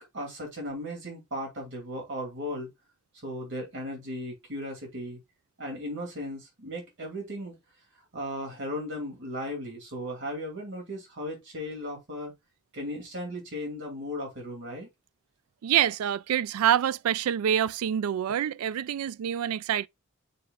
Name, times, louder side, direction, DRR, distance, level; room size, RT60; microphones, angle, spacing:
voice 1, 0.0-2.7 3.2-5.2 5.6-7.6 8.1-12.3 12.7-14.9, equal, 60° right, 2.8 m, -36 dB
voice 2, 15.6-19.9, right 10 dB, 90° right, 0.3 m, -26 dB
6.7 x 5.8 x 2.4 m
head